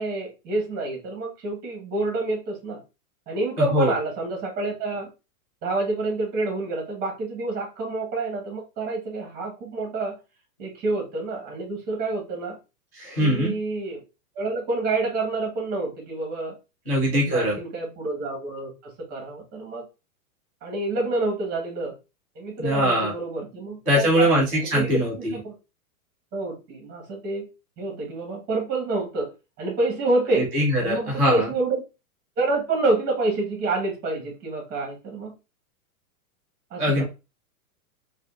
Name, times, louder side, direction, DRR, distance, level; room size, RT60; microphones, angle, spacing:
voice 1, 0.0-2.8 3.3-5.1 5.6-10.1 10.6-12.6 13.2-14.0 14.3-16.6 17.1-19.8 20.6-21.9 22.3-25.5 26.3-27.5 27.8-29.3 29.6-30.5 30.8-31.8 32.4-35.3 36.7-37.0, right 2 dB, 20° right, 1 dB, 1.0 m, -28 dB
voice 2, 13.0-13.5 16.9-17.6 22.6-23.1 23.9-25.3 30.3-31.5 36.8-37.0, equal, 5° left, -14 dB, 0.3 m, -22 dB
3.5 x 2.3 x 2.3 m, 0.28 s
supercardioid pair, 155°, 44 cm